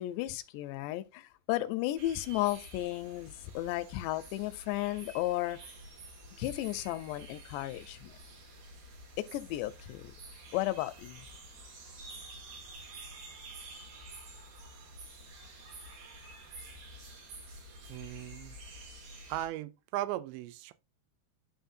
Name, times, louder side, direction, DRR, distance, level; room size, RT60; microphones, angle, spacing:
voice 1, 0.0-5.6 6.4-8.1 9.2-10.1 10.5-11.2, left 16 dB, 85° left, 2.7 m, -34 dB
sound 1, 2.0-19.5, right 1 dB, 65° right, 3.8 m, -49 dB
voice 2, 17.9-18.6 19.3-20.7, right 14 dB, 90° right, 2.9 m, -37 dB
11.5 x 3.8 x 2.6 m
omnidirectional pair, 5.0 m